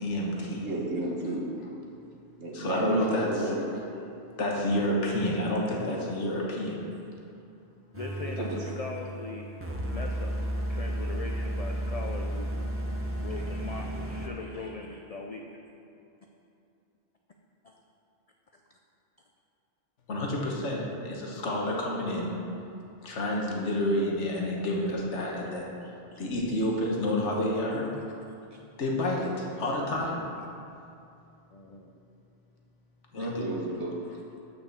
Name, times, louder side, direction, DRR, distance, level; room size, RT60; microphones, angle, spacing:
voice 1, 0.0-0.7 2.5-3.3 4.4-6.8 20.1-22.4 23.0-25.8 26.2-27.9 28.8-30.2 33.1-33.5, left 1 dB, 75° left, -2 dB, 1.5 m, -29 dB
voice 2, 0.6-1.4 2.4-3.6 8.4-8.6 33.2-33.9, right 2 dB, 70° right, -1 dB, 1.4 m, -32 dB
voice 3, 7.9-9.5 9.9-10.4 10.7-12.5 13.2-15.5 17.6-17.8 20.2-20.3 21.3-21.7 23.7-24.1 26.1-26.2 27.2-27.3 28.5-28.6 31.5-31.9, left 3 dB, 55° left, 2 dB, 0.4 m, -40 dB
sound 1, 7.9-14.3, right 1 dB, 15° right, 0.6 m, -33 dB
6.5 x 5.6 x 6.9 m, 2.7 s
omnidirectional pair, 1.2 m